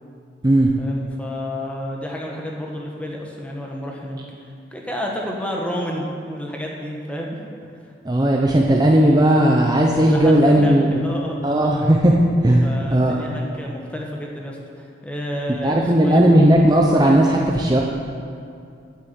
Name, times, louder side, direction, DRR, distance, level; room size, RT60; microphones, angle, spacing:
voice 1, 0.8-7.3 10.0-11.4 12.6-16.2, equal, 5° left, -1 dB, 1.1 m, -30 dB
voice 2, 8.0-11.0 11.4-12.2 12.4-13.2 15.6-17.8, right 1 dB, 20° right, -1 dB, 0.6 m, -16 dB
8.2 x 8.1 x 7.3 m, 2.4 s
head